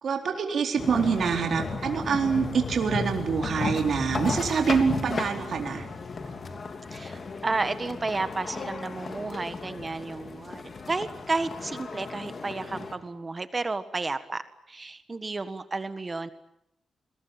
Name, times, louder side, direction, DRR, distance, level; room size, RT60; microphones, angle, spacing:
voice 1, 0.0-5.9, right 6 dB, 60° right, 4 dB, 4.1 m, -26 dB
sound 1, 0.8-13.0, left 4 dB, 45° left, 3.1 m, -35 dB
voice 2, 6.9-14.4 14.7-16.3, right 3 dB, 25° right, 11 dB, 1.5 m, -32 dB
28.5 x 22.0 x 9.1 m, 0.79 s
wide cardioid pair, 125°, 0 cm